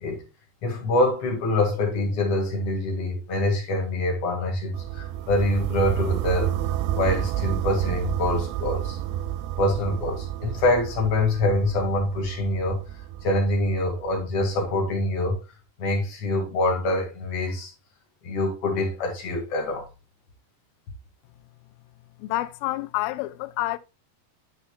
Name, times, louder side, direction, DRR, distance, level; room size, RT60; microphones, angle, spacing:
voice 1, 0.6-6.5 6.9-9.0 9.6-12.8 13.2-15.4 15.8-17.7 18.2-19.8, left 2 dB, 45° left, 2.4 m, -25 dB
sound 1, 4.7-14.7, right 11 dB, 90° right, 2.5 m, -30 dB
voice 2, 22.2-23.8, left 17 dB, 80° left, 2.3 m, -28 dB
10.0 x 6.0 x 2.2 m
omnidirectional pair, 4.3 m